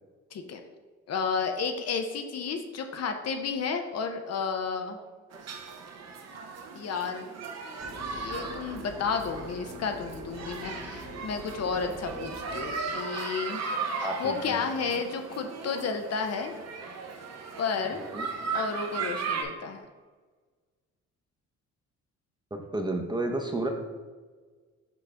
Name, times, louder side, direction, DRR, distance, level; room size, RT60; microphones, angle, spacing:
voice 1, 0.3-0.6 1.1-5.0 6.7-7.3 8.2-13.6 14.0-16.5 17.6-18.0 18.5-19.8, left 5 dB, 55° left, 6 dB, 0.7 m, -32 dB
sound 1, 5.3-19.4, right 4 dB, 60° right, 0.8 m, -37 dB
sound 2, 7.8-12.8, left 1 dB, 30° left, 1.2 m, -44 dB
voice 2, 14.0-14.6 17.9-18.3 22.5-23.7, right 2 dB, 15° right, 3 dB, 0.7 m, -32 dB
6.1 x 4.9 x 3.4 m, 1.4 s
cardioid pair, 90°, 30 cm